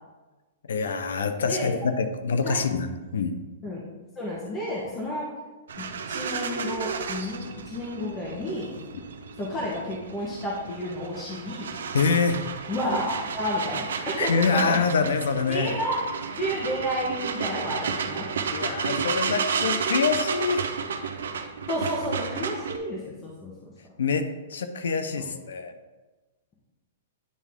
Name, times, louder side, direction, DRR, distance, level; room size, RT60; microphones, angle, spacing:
voice 1, 0.7-3.5 11.9-12.4 14.2-15.8 18.5-20.7 24.0-25.7, left 5 dB, 90° left, 9 dB, 0.7 m, -25 dB
voice 2, 4.2-5.3 5.8-8.7 9.4-11.7 12.7-14.8 15.5-16.0 16.4-18.3 21.7-23.5 25.2-25.3, equal, 15° left, -5 dB, 1.0 m, -31 dB
sound 1, 5.7-22.8, right 6 dB, 90° right, 0.7 m, -32 dB
9.4 x 3.6 x 3.6 m, 1.2 s
hypercardioid pair, 170°, 0 cm